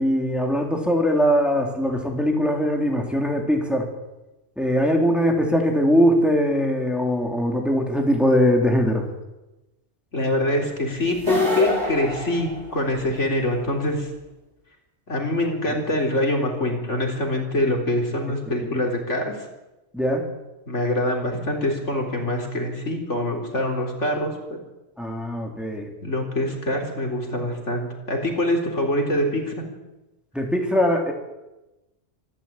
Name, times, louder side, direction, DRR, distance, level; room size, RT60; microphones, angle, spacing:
voice 1, 0.0-3.9 4.6-9.0 19.9-20.3 25.0-25.9 30.3-31.1, equal, ahead, 1 dB, 3.3 m, -21 dB
voice 2, 10.1-14.1 15.1-19.4 20.7-24.3 26.0-29.6, left 1 dB, 85° left, 1 dB, 4.2 m, -24 dB
sound 1, 11.1-13.2, left 1 dB, 65° right, 4.6 m, -26 dB
25.5 x 12.5 x 8.8 m, 1.0 s
omnidirectional pair, 1.2 m